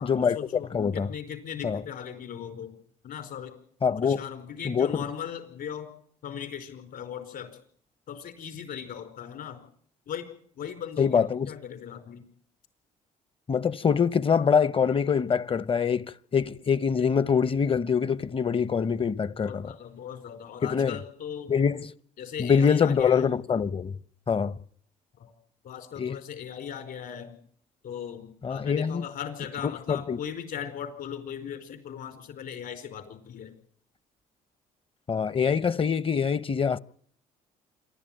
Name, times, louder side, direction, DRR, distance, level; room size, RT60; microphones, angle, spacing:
voice 1, 0.0-2.8 3.0-3.5 4.0-5.9 6.2-7.5 8.1-9.6 10.1-10.3 10.5-12.2 19.4-21.5 22.2-23.3 25.1-25.3 25.6-27.4 27.8-33.5, left 8 dB, 65° left, 4.8 m, -38 dB
voice 2, 0.7-1.1 1.6-1.8 3.8-4.2 4.6-5.0 11.0-11.5 13.5-19.7 20.7-21.0 21.5-21.9 22.4-24.0 24.3-24.6 26.0-26.2 28.4-29.0 29.6-30.2 35.1-36.8, left 6 dB, 35° left, 0.9 m, -24 dB
27.0 x 12.5 x 9.2 m
supercardioid pair, 65°, 16 cm